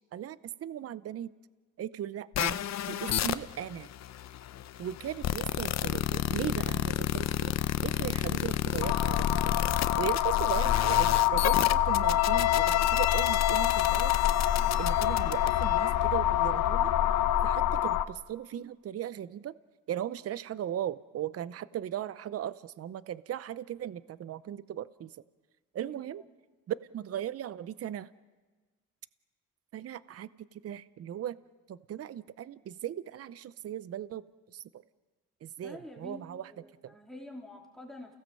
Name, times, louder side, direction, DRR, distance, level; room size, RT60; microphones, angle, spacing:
voice 1, 0.1-1.3 1.8-3.9 4.8-7.5 7.8-9.5 10.0-14.2 14.5-16.9 17.4-19.5 19.9-25.1 25.7-26.2 26.7-28.1 29.7-31.4 31.7-34.2 34.5-34.8 35.4-36.5 36.8-36.9, right 11 dB, 50° right, 17 dB, 0.7 m, -38 dB
sound 1, 2.3-15.9, left 12 dB, 60° left, 0.8 m, -31 dB
sound 2, 8.8-18.0, left 12 dB, 85° left, 1.0 m, -26 dB
voice 2, 35.6-36.2 36.5-38.2, left 1 dB, ahead, 0 dB, 3.5 m, -47 dB
29.0 x 17.0 x 7.6 m, 1.3 s
cardioid pair, 90°, 30 cm